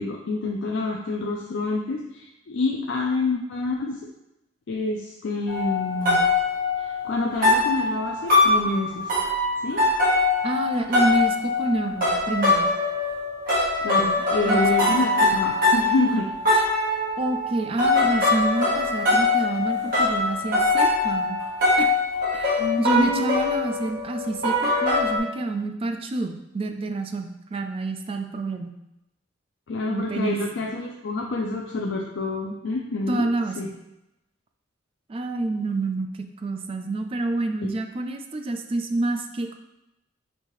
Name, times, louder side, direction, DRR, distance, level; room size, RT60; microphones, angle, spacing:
voice 1, 0.0-4.0 4.7-6.3 6.8-9.2 9.6-9.8 13.8-16.3 22.6-23.5 29.7-33.3 33.6-33.8 37.6-37.7, left 3 dB, 70° left, 0 dB, 0.4 m, -27 dB
sound 1, 5.5-25.2, left 2 dB, 50° right, 1.3 m, -23 dB
voice 2, 10.4-12.7 14.5-15.0 17.2-21.4 21.8-21.9 22.3-28.7 29.9-30.4 33.1-33.7 35.1-36.1 36.4-39.5, right 2 dB, 30° right, 5 dB, 0.3 m, -28 dB
5.2 x 2.7 x 3.0 m, 0.89 s
head